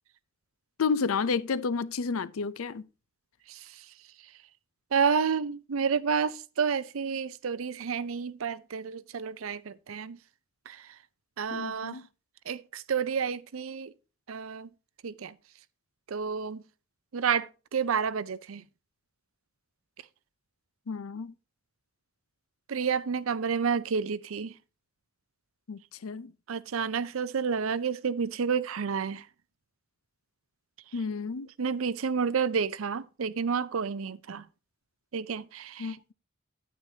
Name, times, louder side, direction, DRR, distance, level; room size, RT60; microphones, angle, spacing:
voice 1, 0.8-2.8 11.5-12.1 20.9-21.3 25.7-26.3 30.9-31.5 35.8-36.0, left 5 dB, 90° left, 0.5 m, -31 dB
voice 2, 4.9-10.2 10.7-10.9 11.4-12.0 12.5-13.9 14.3-14.7 15.0-15.3 16.1-16.6 17.1-18.6 22.7-24.5 26.5-29.2 31.6-34.4 35.1-36.0, right 6 dB, 80° right, 0.5 m, -30 dB
9.7 x 9.3 x 2.7 m
head